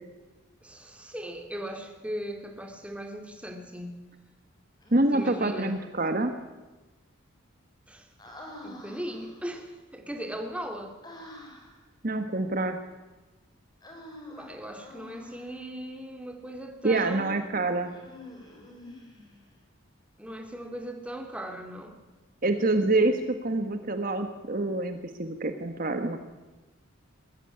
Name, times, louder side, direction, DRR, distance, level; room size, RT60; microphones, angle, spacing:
voice 1, 0.6-4.0 5.1-5.8 7.9-8.3 8.6-11.0 14.3-17.6 20.2-22.0, equal, 5° right, 3 dB, 2.3 m, -38 dB
Human voice, 4.8-5.7 8.2-9.5 11.0-11.8 13.8-15.6 17.9-19.5, left 1 dB, 20° left, 4.3 m, -47 dB
voice 2, 4.9-6.3 12.0-12.8 16.8-17.9 22.4-26.2, right 2 dB, 40° right, 7 dB, 1.3 m, -26 dB
20.5 x 14.5 x 9.9 m, 1.2 s
head